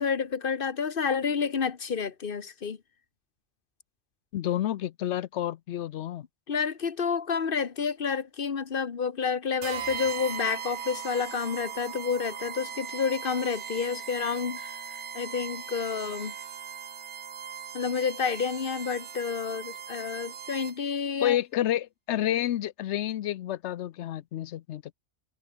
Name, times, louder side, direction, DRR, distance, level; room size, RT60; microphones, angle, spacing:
voice 1, 0.0-2.8 6.5-16.3 17.7-21.4, left 6 dB, 55° left, 1.4 m, -29 dB
voice 2, 4.3-6.2 21.2-24.9, left 12 dB, 85° left, 0.9 m, -29 dB
sound 1, 9.6-21.0, right 7 dB, 90° right, 1.4 m, -39 dB
Wind instrument woodwind instrument, 12.3-16.5, right 5 dB, 50° right, 1.5 m, -45 dB
omnidirectional pair, 1.1 m